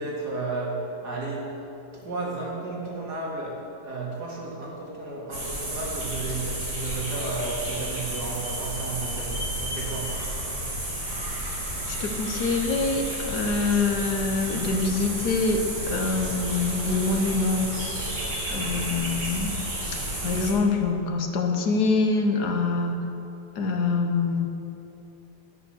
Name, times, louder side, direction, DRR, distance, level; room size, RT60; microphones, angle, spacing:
voice 1, 0.0-1.6 1.9-10.2, right 3 dB, 70° right, -3 dB, 2.6 m, -33 dB
sound 1, 5.3-20.5, right 1 dB, 85° right, 3.4 m, -31 dB
voice 2, 11.9-17.8 18.5-19.5 20.2-23.0 23.5-24.5, left 3 dB, 70° left, 3 dB, 1.6 m, -25 dB
11.0 x 8.2 x 6.3 m, 2.9 s
omnidirectional pair, 1.8 m